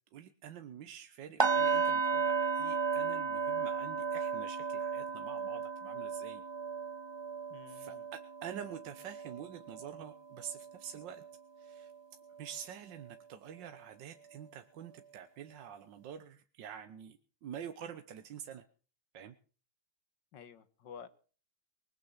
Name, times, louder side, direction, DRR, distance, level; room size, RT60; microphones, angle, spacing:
voice 1, 0.1-6.4 7.7-11.2 11.6-11.9 12.4-18.6 19.1-19.3, right 9 dB, 85° right, 1.7 m, -47 dB
sound 1, 1.4-11.3 11.7-11.9 12.4-12.5, right 5 dB, 25° right, 0.6 m, -34 dB
voice 2, 7.5-8.0 20.3-21.1, left 7 dB, 80° left, 2.0 m, -51 dB
20.0 x 9.2 x 7.3 m
omnidirectional pair, 1.9 m